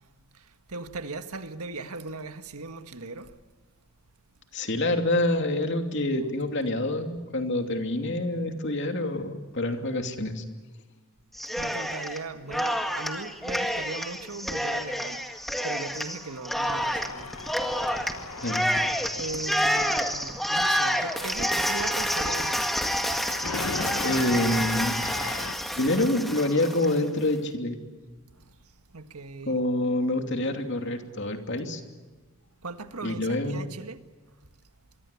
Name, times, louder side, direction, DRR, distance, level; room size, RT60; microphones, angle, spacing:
voice 1, 0.7-3.3 11.6-15.2 15.6-17.3 19.2-22.6 28.9-29.6 32.6-34.0, right 3 dB, 90° right, 1.7 m, -38 dB
voice 2, 4.5-10.4 18.4-18.7 24.0-25.0 25.8-27.8 29.5-31.8 33.0-33.6, left 1 dB, 55° left, 2.8 m, -27 dB
Cheering, 11.3-12.2 12.5-27.0, equal, ahead, 1.8 m, -28 dB
Tools, 16.6-25.6, left 4 dB, 75° left, 1.1 m, -39 dB
26.0 x 24.0 x 8.4 m
head